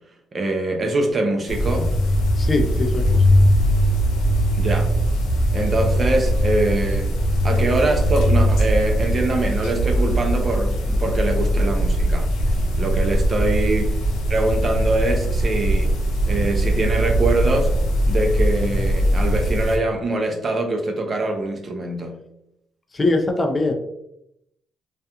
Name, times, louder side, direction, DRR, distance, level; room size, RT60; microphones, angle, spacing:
voice 1, 0.3-1.9 4.6-4.9 5.5-7.2 7.4-12.3 12.8-13.9 14.3-15.9 16.3-17.7 18.1-22.2, right 2 dB, 40° right, 3 dB, 0.5 m, -23 dB
sound 1, 1.5-19.8, equal, 85° left, 0.5 m, -20 dB
voice 2, 2.4-3.3 22.9-23.7, left 2 dB, 30° left, 4 dB, 0.4 m, -22 dB
2.4 x 2.2 x 2.8 m, 0.78 s
cardioid pair, 90°, 0 cm